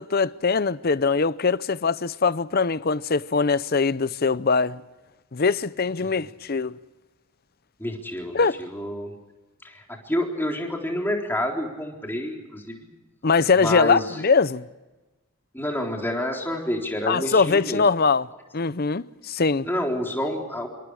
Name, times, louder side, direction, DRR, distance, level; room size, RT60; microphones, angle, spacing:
voice 1, 0.0-4.8 5.3-6.8 8.3-8.6 13.2-14.6 17.1-18.3 18.5-19.7, left 4 dB, 45° left, 0.7 m, -22 dB
voice 2, 7.8-9.2 9.6-12.9 13.5-14.2 15.5-17.8 19.6-20.7, left 1 dB, 10° left, 3.9 m, -28 dB
27.5 x 26.5 x 4.9 m
head